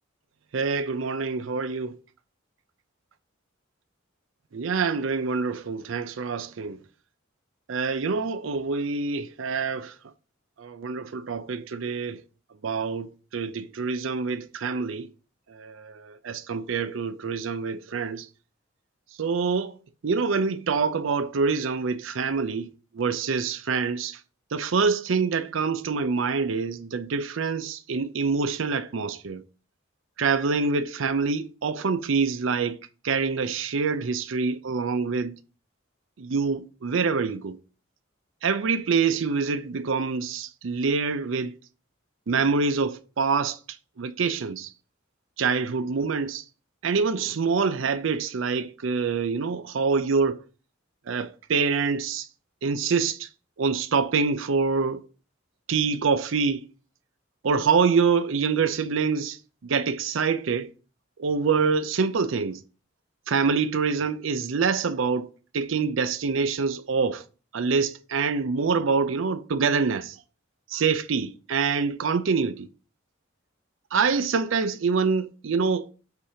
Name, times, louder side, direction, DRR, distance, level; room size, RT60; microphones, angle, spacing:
voice 1, 0.5-2.0 4.5-6.8 7.7-9.9 10.6-12.2 12.6-15.1 15.5-18.3 19.2-19.7 20.0-24.2 24.5-29.4 30.2-32.8 33.0-35.4 36.2-37.6 38.4-41.5 42.3-43.6 44.0-44.7 45.4-46.4 46.8-50.4 51.1-52.3 52.6-53.3 53.6-55.0 55.7-56.6 57.4-59.4 59.6-60.7 61.2-62.6 63.3-65.3 65.5-67.2 67.5-70.1 70.7-72.7 73.9-75.9, right 5 dB, 65° right, 0.5 m, -26 dB
8.1 x 2.8 x 5.0 m
head